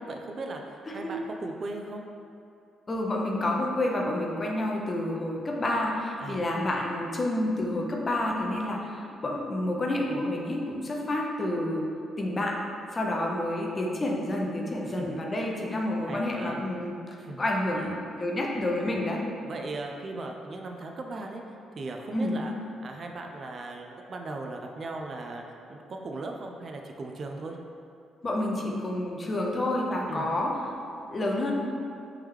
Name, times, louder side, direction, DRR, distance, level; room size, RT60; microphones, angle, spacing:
voice 1, 0.0-2.0 6.2-6.5 14.8-15.7 16.0-16.6 17.2-17.4 17.8-18.1 19.4-21.4 21.8-22.5 22.8-25.4 25.7-27.6 30.1-30.3, right 2 dB, 45° right, 2 dB, 0.3 m, -38 dB
voice 2, 2.9-11.8 12.2-12.6 12.9-16.9 17.4-19.2 22.1-22.4 28.2-30.6 31.1-31.5, left 1 dB, 30° left, -1 dB, 0.5 m, -29 dB
3.5 x 3.1 x 3.2 m, 2.5 s
cardioid pair, 90°, 0 cm